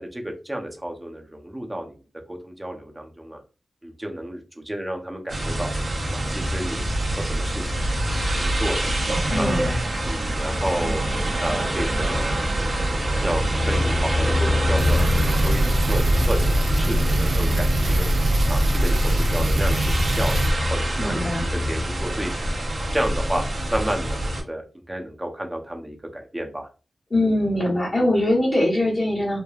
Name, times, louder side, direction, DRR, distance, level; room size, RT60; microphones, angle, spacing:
voice 1, 0.0-2.0 2.3-3.4 3.8-5.7 6.1-8.8 9.4-9.7 10.0-11.0 11.4-12.8 13.2-18.1 18.5-20.4 20.7-21.2 21.5-22.3 22.9-23.4 23.7-26.7, right 1 dB, 15° right, 2 dB, 0.7 m, -31 dB
sound 1, 5.3-24.4, equal, 60° right, 0.8 m, -25 dB
voice 2, 9.3-9.7 21.0-21.4 27.1-29.4, left 1 dB, 45° left, -6 dB, 1.1 m, -22 dB
sound 2, 14.8-20.5, right 1 dB, 75° right, 0.5 m, -22 dB
3.1 x 2.1 x 2.3 m, 0.33 s
wide cardioid pair, 70°, 0 cm